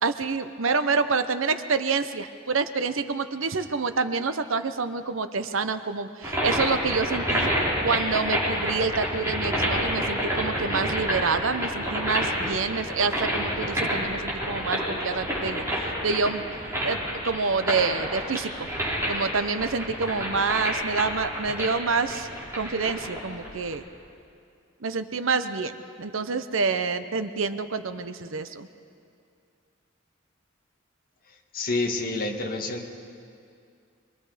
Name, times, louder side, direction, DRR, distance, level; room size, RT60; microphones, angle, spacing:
voice 1, 0.0-7.5 7.8-16.4 16.8-18.7 19.1-22.3 22.5-23.8 24.8-28.7, right 4 dB, 80° right, 10 dB, 0.9 m, -27 dB
sound 1, 6.2-23.8, equal, 15° right, 5.0 m, -29 dB
voice 2, 31.5-32.9, left 2 dB, 45° left, 1 dB, 1.9 m, -28 dB
26.5 x 21.5 x 5.1 m, 2.4 s
head